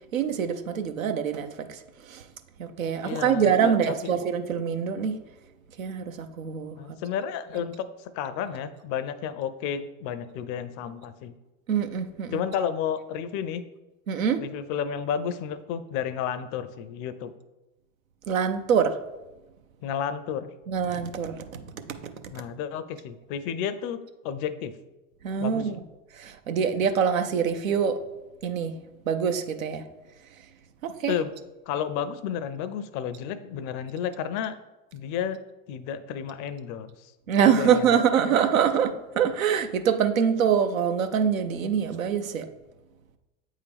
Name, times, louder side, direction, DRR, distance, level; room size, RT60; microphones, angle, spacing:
voice 1, 0.1-1.8 2.1-2.2 2.6-5.2 5.8-6.8 11.7-12.4 14.1-14.4 18.3-19.0 20.7-21.6 21.9-22.1 25.2-25.8 26.1-28.0 28.4-28.7 29.1-29.8 30.8-31.1 37.3-42.5, right 7 dB, 85° right, 8 dB, 0.6 m, -25 dB
voice 2, 3.0-4.2 6.8-7.9 8.1-11.3 12.3-13.6 14.4-17.3 19.8-20.5 22.3-24.7 25.4-25.7 31.1-31.3 31.7-34.6 34.9-35.4 35.7-36.9 37.5-38.0, left 8 dB, 45° left, 13 dB, 0.5 m, -31 dB
8.2 x 3.7 x 3.4 m, 1.1 s
hypercardioid pair, 75°, 40 cm